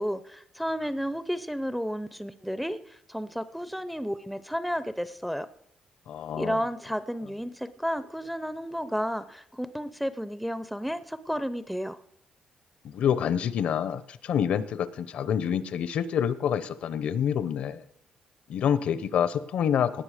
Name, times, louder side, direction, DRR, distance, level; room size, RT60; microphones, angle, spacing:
voice 1, 0.0-5.5 6.4-12.0, equal, ahead, 13 dB, 0.5 m, -32 dB
voice 2, 6.1-6.6 12.8-17.8 18.5-20.0, left 8 dB, 70° left, 15 dB, 0.8 m, -27 dB
19.0 x 7.0 x 5.0 m, 0.74 s
cardioid pair, 150°, 2 cm